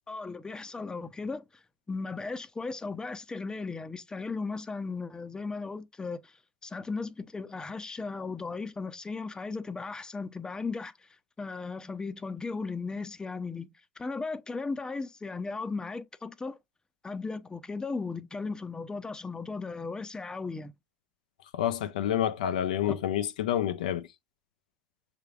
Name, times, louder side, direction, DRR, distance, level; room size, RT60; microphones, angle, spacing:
voice 1, 0.1-6.4 6.6-11.1 11.4-16.6 17.0-20.7 22.9-23.0, left 4 dB, 20° left, 0.6 m, -36 dB
voice 2, 21.5-24.1, left 10 dB, 85° left, 0.4 m, -28 dB
6.5 x 3.4 x 2.4 m
hypercardioid pair, 70°, 4 cm